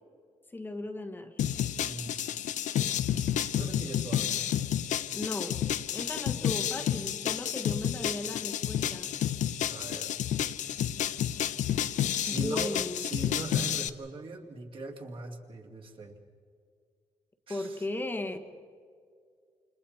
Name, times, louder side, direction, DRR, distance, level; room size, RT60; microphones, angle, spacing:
voice 1, 0.5-1.4 5.1-5.6 5.9-9.1 12.3-13.0 17.5-18.4, left 2 dB, 15° left, 6 dB, 1.3 m, -36 dB
sound 1, 1.4-13.9, left 10 dB, 85° left, 0.8 m, -30 dB
voice 2, 1.6-2.2 3.5-4.5 9.7-10.2 12.2-16.2 17.5-17.9, right 3 dB, 45° right, 2 dB, 2.5 m, -41 dB
29.5 x 28.0 x 4.3 m, 2.1 s
wide cardioid pair, 160°, 12 cm